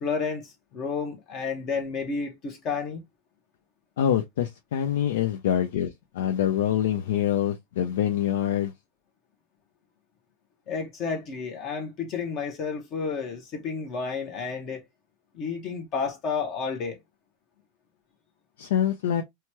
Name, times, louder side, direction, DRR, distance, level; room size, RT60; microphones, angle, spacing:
voice 1, 0.0-3.0 10.7-14.8 15.3-17.0, left 5 dB, 45° left, 0.9 m, -31 dB
voice 2, 4.0-8.7 18.6-19.2, left 10 dB, 80° left, 0.4 m, -25 dB
2.8 x 2.3 x 2.9 m
hypercardioid pair, 110°, 0 cm